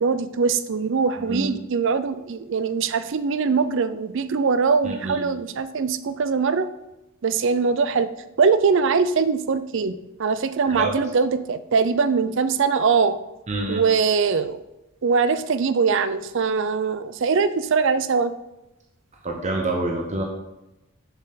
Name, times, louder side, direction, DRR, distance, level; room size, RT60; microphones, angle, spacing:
voice 1, 0.0-6.7 7.2-8.1 8.4-9.9 10.2-13.2 13.7-14.6 15.0-18.3, right 5 dB, 55° right, 13 dB, 0.4 m, -22 dB
voice 2, 1.2-1.5 4.8-5.2 10.7-10.9 13.5-13.8 19.2-20.2, right 2 dB, 30° right, 0 dB, 0.9 m, -27 dB
6.9 x 6.6 x 4.0 m, 0.93 s
head